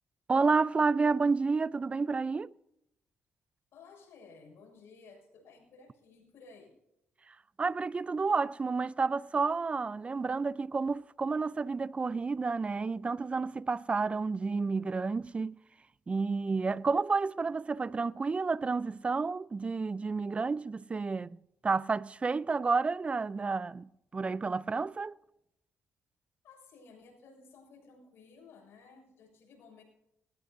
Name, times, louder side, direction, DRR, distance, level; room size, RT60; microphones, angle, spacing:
voice 1, 0.3-2.5 7.3-15.6 16.1-25.1, right 4 dB, 30° right, 0.5 m, -30 dB
voice 2, 3.7-6.7 26.4-29.8, left 4 dB, 75° left, 6.8 m, -55 dB
19.5 x 19.5 x 2.7 m
cardioid pair, 90°, 4 cm